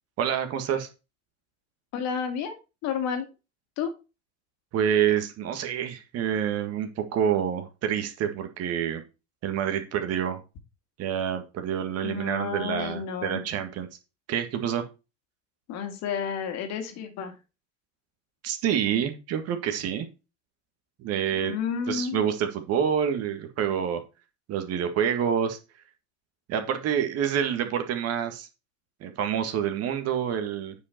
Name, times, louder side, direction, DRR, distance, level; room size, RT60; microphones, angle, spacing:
voice 1, 0.2-0.9 4.7-9.0 9.4-10.4 11.0-13.9 14.3-14.8 18.4-20.1 21.0-21.6 21.9-24.0 24.5-25.6 26.5-28.5 29.0-30.7, right 9 dB, 45° right, 7 dB, 1.9 m, -27 dB
voice 2, 1.9-2.5 2.8-3.2 3.8-3.9 12.0-13.4 15.7-17.3 21.4-22.2, left 7 dB, 50° left, 6 dB, 2.2 m, -31 dB
9.4 x 5.3 x 4.4 m, 0.29 s
figure-of-eight pair, 75°, 34 cm